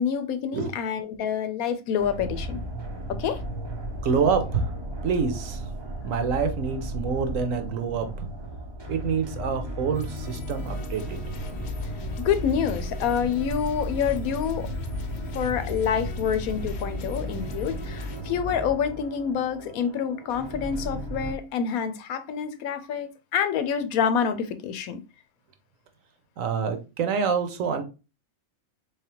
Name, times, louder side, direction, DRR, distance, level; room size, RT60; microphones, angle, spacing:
voice 1, 0.0-2.6 3.1-3.4 12.2-14.7 15.3-25.0, left 7 dB, 90° left, 1.1 m, -27 dB
sound 1, 2.0-21.3, equal, 30° right, 0.5 m, -34 dB
voice 2, 4.0-4.7 5.0-5.6 6.0-8.3 8.9-11.2 26.4-27.8, right 5 dB, 70° right, 1.1 m, -27 dB
sound 2, 9.9-18.2, left 6 dB, 60° left, 0.8 m, -42 dB
4.0 x 3.4 x 2.9 m
omnidirectional pair, 1.5 m